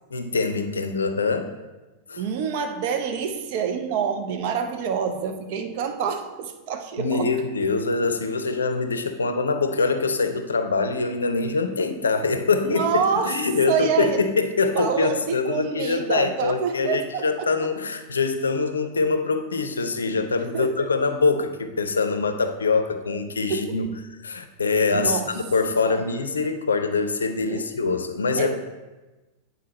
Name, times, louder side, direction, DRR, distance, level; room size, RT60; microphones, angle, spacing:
voice 1, 0.1-1.5 2.1-2.2 7.0-23.9 24.2-28.6, left 4 dB, 70° left, 8 dB, 0.5 m, -24 dB
voice 2, 2.2-7.3 12.6-13.3 13.7-14.2 14.7-17.7 20.2-20.9 23.5-23.8 24.9-25.3 25.8-26.0 27.4-27.7 28.4-28.6, right 7 dB, 50° right, 6 dB, 0.6 m, -27 dB
8.5 x 3.9 x 4.1 m, 1.2 s
figure-of-eight pair, 90°, 0 cm